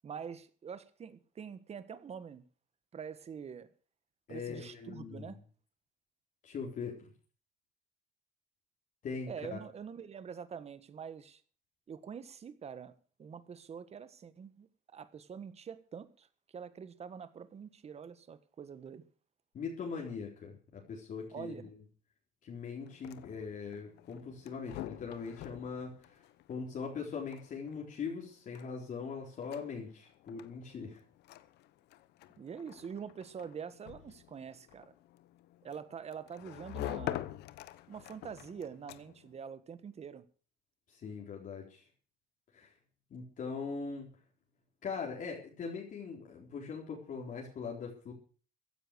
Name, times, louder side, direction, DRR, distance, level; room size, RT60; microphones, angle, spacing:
voice 1, 0.0-2.4 2.9-3.7 4.3-5.4 9.3-11.4 11.9-19.0 21.3-21.7 32.4-34.9 35.6-37.3 37.9-40.2, right 7 dB, 40° right, 1.5 m, -45 dB
voice 2, 4.3-5.4 6.4-7.1 9.0-9.6 19.5-21.5 22.4-26.2 26.5-31.0 40.9-41.8 42.5-42.7 43.1-44.1 44.8-48.1, left 5 dB, 50° left, 4.1 m, -41 dB
sound 1, 22.8-39.4, left 14 dB, 80° left, 1.0 m, -47 dB
15.5 x 10.0 x 6.4 m
cardioid pair, 110°, 17 cm